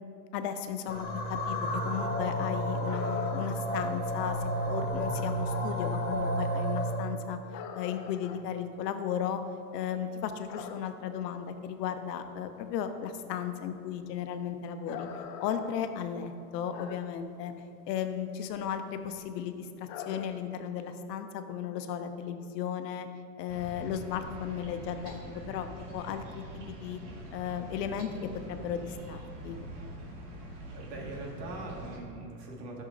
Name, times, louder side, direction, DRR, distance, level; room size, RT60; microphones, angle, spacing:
voice 1, 0.3-4.4 4.7-7.4 7.7-9.4 9.7-15.1 15.4-17.5 17.9-23.1 23.4-25.2 25.5-27.0 27.3-28.1 28.5-29.6, left 8 dB, 80° left, 8 dB, 0.8 m, -35 dB
sound 1, 0.9-7.0, equal, 20° left, 1.1 m, -31 dB
sound 2, 2.8-3.8 4.1-4.2 4.5-5.0 6.0-6.2 6.7-6.9 7.5-9.6 9.9-11.3 11.8-11.9 12.2-12.3 12.6-12.9 13.2-13.4 14.1-17.2 17.5-17.8 18.3-18.7 18.9-19.2 19.9-20.3, left 7 dB, 40° left, 0.6 m, -44 dB
sound 3, 23.5-32.0, right 1 dB, 65° right, 1.8 m, -44 dB
voice 2, 30.7-32.8, right 2 dB, 80° right, -1 dB, 1.9 m, -41 dB
11.5 x 6.7 x 2.6 m, 2.4 s
supercardioid pair, 135°, 49 cm